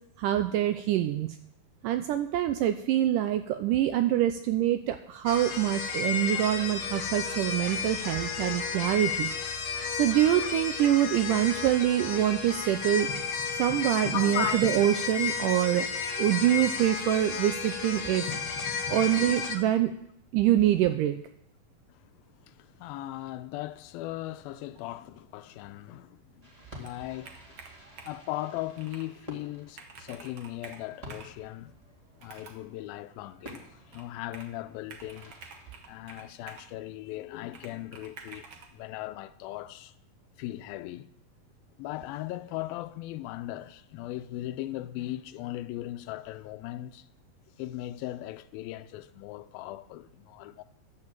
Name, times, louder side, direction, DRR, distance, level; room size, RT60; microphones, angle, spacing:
voice 1, 0.2-1.3 1.8-9.3 9.9-13.1 13.6-15.9 16.2-18.3 18.9-19.9 20.3-21.2, right 12 dB, 80° right, 1.9 m, -25 dB
sound 1, 5.3-19.6, left 5 dB, 55° left, 2.0 m, -33 dB
voice 2, 14.1-14.7 17.0-17.1 21.9-26.5 26.8-27.3 28.1-31.7 32.2-35.3 35.9-39.9 40.4-41.1 41.8-47.1 47.6-50.6, left 15 dB, 85° left, 2.4 m, -38 dB
Fireworks, 26.4-36.6, left 1 dB, 15° right, 1.5 m, -51 dB
Computer keyboard, 26.8-28.3 28.8-29.1 29.5-29.6 29.7-31.4 32.2-32.7 33.5-34.6 34.9-36.7 37.5-38.7, right 5 dB, 60° right, 1.6 m, -49 dB
11.0 x 8.6 x 7.4 m
omnidirectional pair, 4.2 m